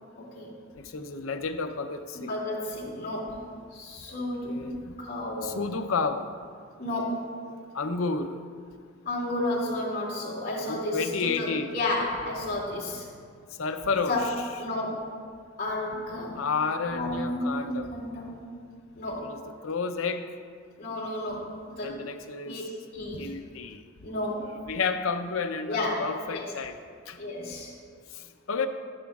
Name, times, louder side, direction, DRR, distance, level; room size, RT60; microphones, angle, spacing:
voice 1, 0.2-0.5 2.1-5.6 6.8-7.2 9.0-13.1 14.1-14.2 14.6-15.0 15.6-16.4 16.9-18.4 19.0-19.3 20.8-22.0 22.4-22.6 22.9-23.3 24.0-24.6 25.7-26.1 26.3-26.5 27.2-27.7, left 1 dB, 45° left, -6 dB, 2.6 m, -32 dB
voice 2, 0.8-2.3 4.1-4.9 5.4-6.3 7.7-8.3 10.7-11.7 13.6-14.3 16.4-17.9 19.2-20.2 21.8-22.6 23.1-23.8 24.6-26.8 27.1-27.2 28.5-28.7, left 4 dB, 85° left, 7 dB, 0.6 m, -31 dB
12.5 x 10.0 x 2.4 m, 2.1 s
head